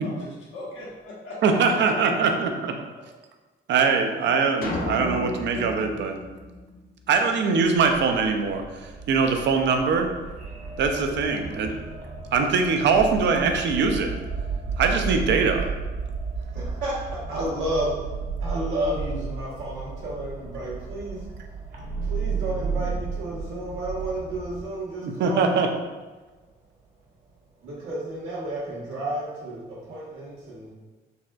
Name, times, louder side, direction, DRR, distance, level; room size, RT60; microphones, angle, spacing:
voice 1, 0.0-1.3 1.7-3.0, left 1 dB, 80° left, -6 dB, 1.2 m, -39 dB
voice 2, 1.4-2.7 3.7-6.2 7.1-10.1 10.8-11.7 12.3-14.1 14.8-15.7 25.0-25.7, right 5 dB, 65° right, 5 dB, 0.4 m, -22 dB
sound 1, 4.6-7.2, left 1 dB, 45° left, 0.5 m, -33 dB
sound 2, 7.7-24.6, right 5 dB, 45° right, 0.9 m, -33 dB
voice 3, 16.5-18.0 18.4-21.3 22.0-25.6 27.6-30.7, right 1 dB, 85° right, -7 dB, 1.2 m, -31 dB
4.0 x 2.2 x 2.3 m, 1.3 s
cardioid pair, 90°, 20 cm